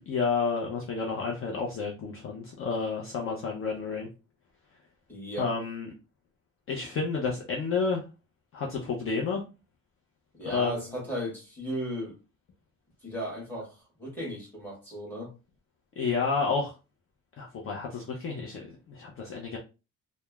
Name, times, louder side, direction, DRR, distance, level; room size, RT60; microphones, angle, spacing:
voice 1, 0.0-4.1 5.4-5.9 6.7-8.0 8.5-9.4 10.4-10.8 16.0-16.7 17.4-19.6, left 4 dB, 40° left, 0.5 m, -30 dB
voice 2, 5.1-5.5 10.4-12.2 13.0-15.3, equal, 5° left, 1.3 m, -35 dB
3.0 x 2.0 x 2.2 m
cardioid pair, 140°, 32 cm